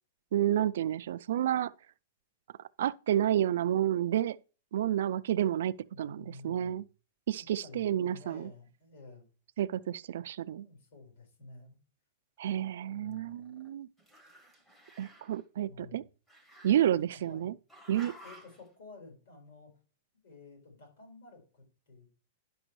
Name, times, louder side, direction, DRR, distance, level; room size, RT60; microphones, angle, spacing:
voice 1, 0.3-1.7 2.6-4.4 4.7-6.8 7.3-8.5 9.6-10.7 12.4-13.9 15.0-16.0 16.6-17.5 17.9-18.1, right 11 dB, 60° right, 0.3 m, -30 dB
voice 2, 5.9-6.8 7.4-9.2 10.5-11.8 12.9-13.6 15.7-16.0 17.1-17.5 18.2-19.7 20.2-22.1, left 3 dB, 60° left, 4.6 m, -52 dB
Growling, 12.5-13.7 14.0-15.4 16.3-17.3 17.7-18.6, right 1 dB, 5° left, 0.8 m, -54 dB
11.0 x 6.0 x 3.1 m
supercardioid pair, 180°, 0 cm